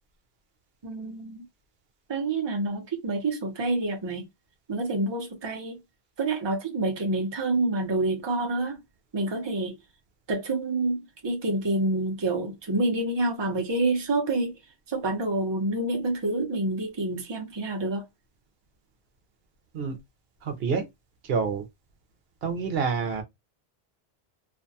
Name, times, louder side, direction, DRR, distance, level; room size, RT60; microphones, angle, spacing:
voice 1, 0.8-1.5 2.1-4.3 4.7-5.8 6.2-8.8 9.1-9.8 10.3-14.6 14.9-18.0, right 2 dB, 30° right, 0.6 m, -27 dB
voice 2, 20.4-20.8 21.2-21.6 22.4-23.2, right 5 dB, 70° right, 0.8 m, -27 dB
2.5 x 2.2 x 2.6 m
omnidirectional pair, 1.1 m